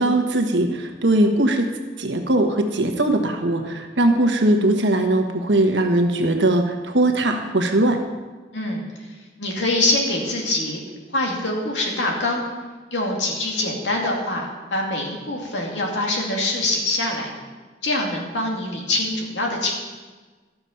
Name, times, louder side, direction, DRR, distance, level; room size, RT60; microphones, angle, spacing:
voice 1, 0.0-1.7 2.0-8.0, right 1 dB, 80° right, 4 dB, 1.3 m, -20 dB
voice 2, 8.5-9.1 9.4-10.8 11.1-12.4 12.9-17.3 17.8-19.7, left 2 dB, 85° left, -1 dB, 2.4 m, -24 dB
12.5 x 7.0 x 5.8 m, 1.3 s
head